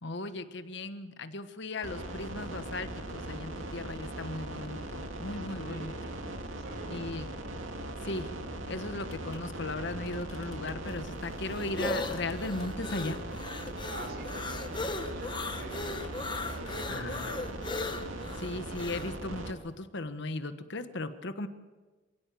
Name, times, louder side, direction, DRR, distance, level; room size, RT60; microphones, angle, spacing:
voice 1, 0.0-5.9 6.9-7.3 8.0-8.3 8.7-13.2 16.9-17.4 18.4-21.5, left 2 dB, 60° left, 10 dB, 1.3 m, -37 dB
sound 1, 1.8-19.5, right 1 dB, 75° right, 2.4 m, -40 dB
voice 2, 5.7-6.1 6.5-7.1 13.9-14.7 15.0-16.1 16.6-17.5, right 2 dB, 55° right, 3 dB, 6.1 m, -46 dB
sound 2, 9.1-9.4 9.7-9.8 10.1-11.4 12.0-13.2 13.7-13.8 15.2-15.5 15.7-16.8, left 4 dB, 85° left, 2.3 m, -56 dB
sound 3, 10.9-19.1, left 2 dB, 25° left, 1.2 m, -37 dB
27.0 x 17.5 x 7.7 m, 1.3 s
head